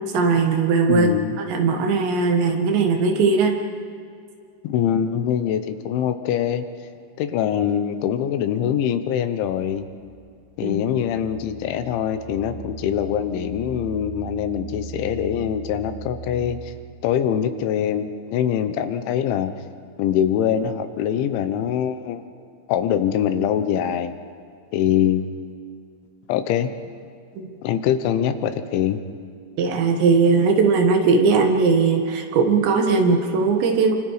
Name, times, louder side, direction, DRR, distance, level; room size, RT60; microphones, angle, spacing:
voice 1, 0.1-1.1 1.4-3.6 10.6-10.8 27.4-27.5 29.6-33.9, right 4 dB, 75° right, 3 dB, 3.9 m, -19 dB
voice 2, 0.9-1.4 4.6-6.7 7.2-9.9 10.6-16.7 17.0-19.5 20.0-22.2 22.7-24.2 24.7-25.3 26.3-26.7 27.6-29.0, left 9 dB, 85° left, 9 dB, 3.4 m, -23 dB
sound 1, 9.7-17.1, right 6 dB, 15° left, 4.5 m, -40 dB
29.0 x 25.5 x 5.0 m, 2.2 s
omnidirectional pair, 5.3 m